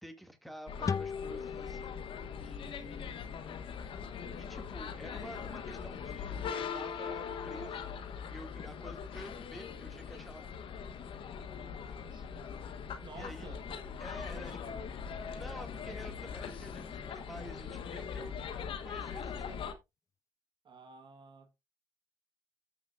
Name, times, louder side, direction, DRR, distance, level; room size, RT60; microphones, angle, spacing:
voice 1, 0.0-3.5 4.4-8.0 8.3-10.5 11.9-12.1 13.1-13.5 14.0-14.8 15.3-18.4 18.8-19.7, equal, ahead, 2.4 m, -49 dB
sound 1, 0.7-19.7, left 7 dB, 70° left, 1.2 m, -41 dB
sound 2, 0.9-4.2, left 6 dB, 35° left, 0.4 m, -40 dB
voice 2, 12.0-12.5 13.0-13.8 14.3-14.7 15.9-16.0 20.6-21.6, right 4 dB, 60° right, 1.5 m, -52 dB
13.5 x 5.8 x 2.6 m
supercardioid pair, 50°, 9 cm